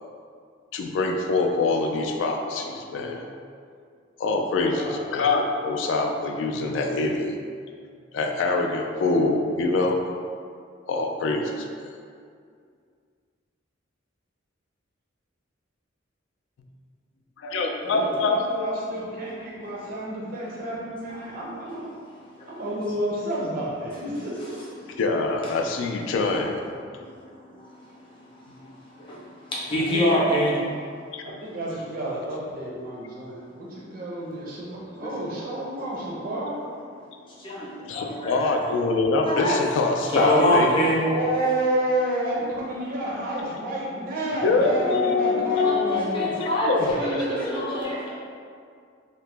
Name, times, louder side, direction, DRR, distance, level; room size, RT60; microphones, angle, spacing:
voice 1, 0.7-3.2 4.2-7.4 8.1-10.0 10.9-11.9 17.4-18.7 25.0-26.6 31.1-31.2 37.9-40.9 44.3-47.0, left 3 dB, 70° left, 3 dB, 0.3 m, -24 dB
voice 2, 17.8-21.8 22.5-24.5 29.6-30.2 31.2-36.6 41.0-46.3 46.8-48.1, right 1 dB, 45° right, -5 dB, 0.4 m, -30 dB
voice 3, 29.7-30.6 35.0-35.1 37.4-38.5 39.2-39.6 40.0-41.0 45.5-45.8 46.1-48.1, equal, 25° left, -7 dB, 0.6 m, -25 dB
2.8 x 2.1 x 3.2 m, 2.2 s
head